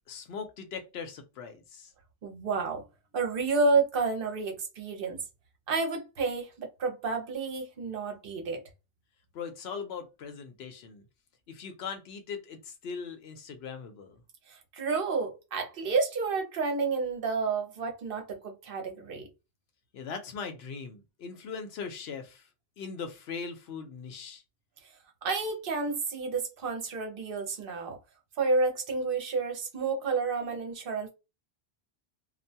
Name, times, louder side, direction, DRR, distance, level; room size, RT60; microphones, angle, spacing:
voice 1, 0.1-1.9 9.3-11.0 11.5-14.2 19.9-22.5 22.8-24.4, left 5 dB, 75° left, 0.8 m, -40 dB
voice 2, 2.2-2.8 3.1-5.2 5.7-8.6 14.5-19.3 25.2-28.0 28.4-31.1, right 4 dB, 65° right, 0.9 m, -30 dB
2.3 x 2.2 x 2.7 m
omnidirectional pair, 1.1 m